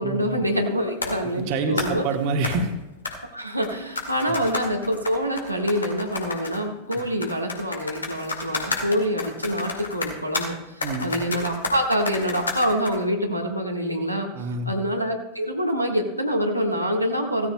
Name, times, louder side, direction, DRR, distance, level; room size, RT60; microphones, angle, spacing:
voice 1, 0.0-2.0 3.3-14.3 14.6-17.5, equal, 90° right, 0 dB, 1.5 m, -26 dB
sound 1, 1.0-1.2 1.8-2.0 2.4-2.6 3.0-3.2 3.6-6.6 6.9-10.5 10.8-13.0, left 3 dB, 75° left, 1.9 m, -31 dB
voice 2, 1.3-2.7 10.8-11.1 14.3-14.7, right 3 dB, 45° right, 4 dB, 1.6 m, -26 dB
16.0 x 13.5 x 2.2 m, 0.98 s
figure-of-eight pair, 90°, 0 cm